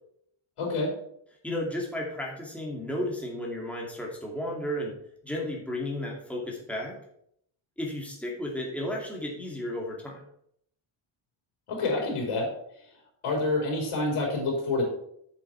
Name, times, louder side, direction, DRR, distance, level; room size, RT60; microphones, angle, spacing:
voice 1, 0.6-0.9 11.7-12.5 13.2-14.9, left 2 dB, 90° left, -2 dB, 4.2 m, -27 dB
voice 2, 1.4-4.9 5.2-7.0 7.8-10.2, left 1 dB, 5° left, -2 dB, 2.4 m, -33 dB
8.3 x 7.7 x 4.6 m, 0.70 s
wide cardioid pair, 140°, 49 cm